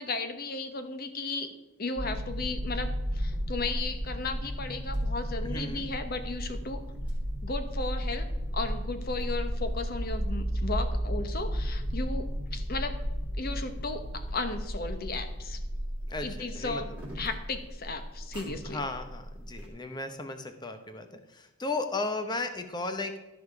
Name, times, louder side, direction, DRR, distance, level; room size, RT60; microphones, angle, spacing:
voice 1, 0.0-1.5 1.8-6.8 7.4-8.3 8.5-13.0 13.4-15.6 16.2-18.8, left 3 dB, 45° left, 8 dB, 0.9 m, -35 dB
sound 1, 2.0-19.7, equal, 5° right, 2.1 m, -34 dB
voice 2, 5.4-5.8 16.1-16.8 18.6-23.2, left 2 dB, 20° left, 7 dB, 0.8 m, -35 dB
13.0 x 5.0 x 4.8 m, 1.0 s
head